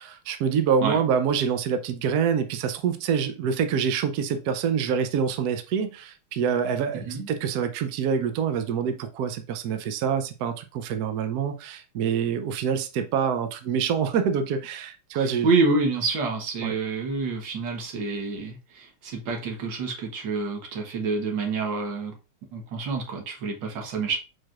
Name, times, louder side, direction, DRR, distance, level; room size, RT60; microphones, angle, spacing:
voice 1, 0.0-15.5 16.6-16.7, right 7 dB, 85° right, 0.8 m, -26 dB
voice 2, 15.1-22.1 22.5-24.2, right 3 dB, 60° right, 1.6 m, -27 dB
4.6 x 4.5 x 2.4 m
omnidirectional pair, 2.4 m